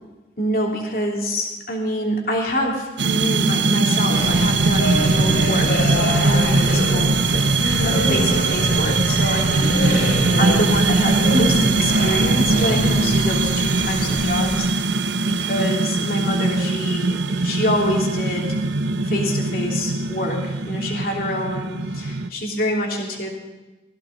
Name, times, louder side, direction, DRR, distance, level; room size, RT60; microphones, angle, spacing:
voice 1, 0.4-7.5 7.8-14.7 15.2-18.5 19.0-23.3, equal, 55° left, -1 dB, 3.1 m, -26 dB
sound 1, 3.0-22.3, right 3 dB, 85° right, 0.7 m, -21 dB
sound 2, 4.1-14.5, left 1 dB, 70° left, 2.8 m, -25 dB
17.5 x 15.5 x 4.0 m, 1.1 s
head